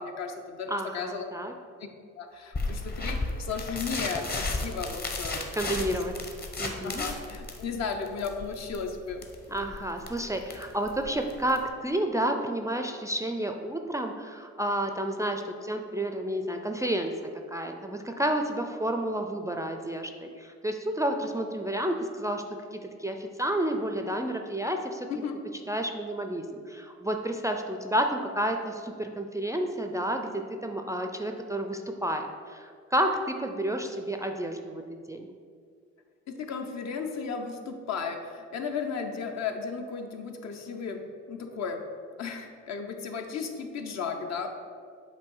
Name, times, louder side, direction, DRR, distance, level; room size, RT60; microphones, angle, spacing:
voice 1, 0.0-1.3 2.2-5.4 6.8-9.2 25.1-25.4 36.3-41.0 41.3-41.8 42.2-44.5, left 5 dB, 60° left, 4 dB, 0.8 m, -34 dB
voice 2, 0.7-1.5 5.5-6.1 6.6-7.1 9.5-17.1 17.5-22.4 22.7-25.1 25.7-35.3, right 1 dB, 10° right, 4 dB, 0.4 m, -30 dB
sound 1, 2.5-11.7, left 2 dB, 30° left, 0.8 m, -34 dB
7.6 x 2.6 x 5.4 m, 2.1 s
cardioid pair, 90°, 30 cm